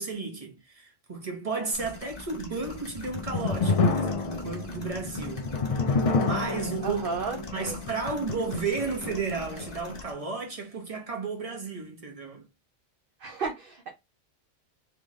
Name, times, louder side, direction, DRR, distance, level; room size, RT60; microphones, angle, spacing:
voice 1, 0.0-5.5 6.2-7.0 7.5-12.4, right 4 dB, 30° right, 1.3 m, -33 dB
sound 1, 1.7-10.1, left 3 dB, 35° left, 1.2 m, -43 dB
sound 2, 2.8-10.0, left 3 dB, 65° left, 0.3 m, -29 dB
voice 2, 6.8-7.8 13.2-13.9, right 4 dB, 50° right, 0.8 m, -33 dB
3.5 x 3.5 x 3.1 m
omnidirectional pair, 1.3 m